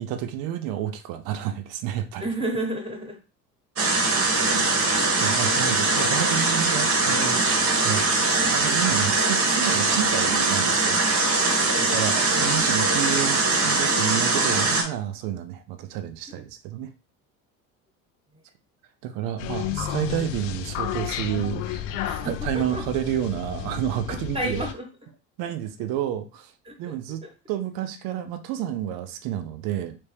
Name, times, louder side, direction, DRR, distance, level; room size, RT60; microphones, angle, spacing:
voice 1, 0.0-2.3 4.5-4.7 5.1-7.5 7.8-8.1 8.5-11.0 11.8-13.4 13.6-16.9 19.0-21.8 22.2-24.6 25.4-26.5 26.8-27.2 27.5-30.0, right 11 dB, 55° right, 9 dB, 0.7 m, -30 dB
voice 2, 2.2-3.2 11.6-12.0 22.1-22.9 24.1-24.9 26.6-26.8 27.2-27.3, right 1 dB, 15° right, 1 dB, 1.3 m, -32 dB
sound 1, 3.8-14.8, right 3 dB, 35° right, 1.1 m, -22 dB
sound 2, 19.4-24.7, left 10 dB, 65° left, 0.6 m, -32 dB
3.3 x 2.9 x 3.3 m, 0.31 s
hypercardioid pair, 75°, 42 cm